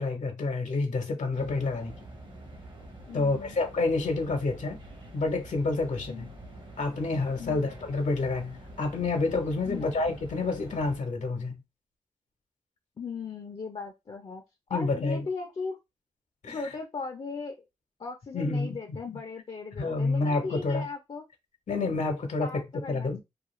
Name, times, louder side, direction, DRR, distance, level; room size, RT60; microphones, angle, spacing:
voice 1, 0.0-1.9 3.1-4.8 5.1-6.3 6.8-11.6 14.7-15.2 16.4-16.6 18.3-18.8 19.8-20.8 21.7-23.2, left 3 dB, 80° left, 0.8 m, -28 dB
sound 1, 1.3-11.0, right 1 dB, 40° right, 0.8 m, -47 dB
voice 2, 3.1-3.6 6.1-6.3 7.4-7.7 9.7-9.9 13.0-14.4 14.7-15.8 16.5-17.6 18.0-21.2 22.4-23.2, left 4 dB, 45° left, 0.5 m, -37 dB
2.4 x 2.3 x 3.0 m
cardioid pair, 70°, 13 cm